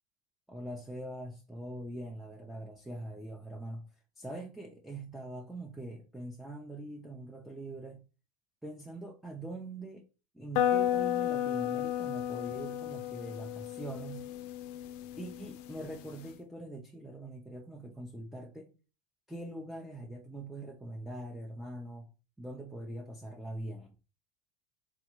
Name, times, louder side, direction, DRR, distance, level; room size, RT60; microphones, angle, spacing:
voice 1, 0.5-3.9 4.2-8.0 8.6-10.0 10.3-14.2 15.2-18.7 19.3-22.1 22.4-23.9, right 1 dB, ahead, 0.5 m, -43 dB
sound 1, 10.5-16.3, left 11 dB, 70° left, 0.4 m, -33 dB
3.3 x 2.4 x 3.0 m
hypercardioid pair, 90°, 21 cm